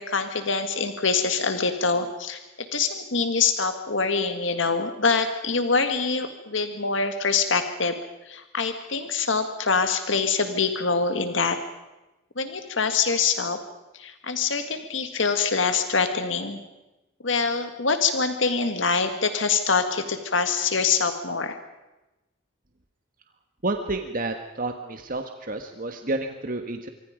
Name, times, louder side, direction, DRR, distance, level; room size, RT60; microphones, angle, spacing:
voice 1, 0.0-7.9 8.3-11.6 12.4-13.6 13.9-16.6 17.2-21.6, left 4 dB, 70° left, 8 dB, 1.8 m, -25 dB
voice 2, 23.6-26.9, right 2 dB, 45° right, 6 dB, 1.5 m, -30 dB
26.0 x 24.0 x 5.1 m, 1.0 s
head